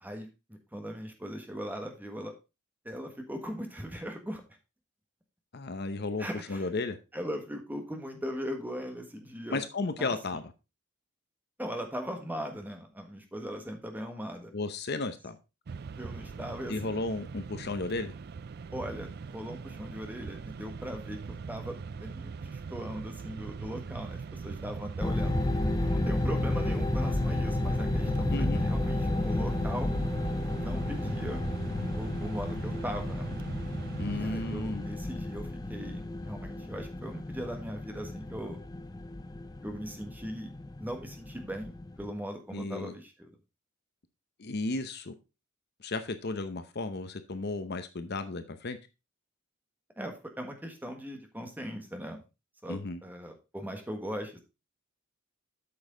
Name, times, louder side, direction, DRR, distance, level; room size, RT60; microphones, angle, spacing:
voice 1, 0.0-2.3 2.8-4.4 6.2-6.7 7.1-9.6 10.0-10.1 11.6-14.5 16.0-17.0 18.7-25.4 25.8-28.3 28.6-29.9 30.5-31.4 32.0-33.3 34.1-38.6 39.6-40.5 40.8-43.3 50.0-52.2 52.6-54.4, equal, 10° right, 4 dB, 1.4 m, -39 dB
voice 2, 5.5-7.0 9.5-10.4 14.5-15.4 16.7-18.1 28.3-28.6 34.0-34.9 42.5-42.9 44.4-45.1 45.8-48.8 52.7-53.0, left 3 dB, 50° left, 10 dB, 0.7 m, -34 dB
Mechanisms, 15.7-35.1, right 5 dB, 50° right, 0.4 m, -41 dB
sound 1, 25.0-42.1, left 2 dB, 20° left, 0.5 m, -32 dB
8.6 x 6.3 x 3.8 m, 0.27 s
head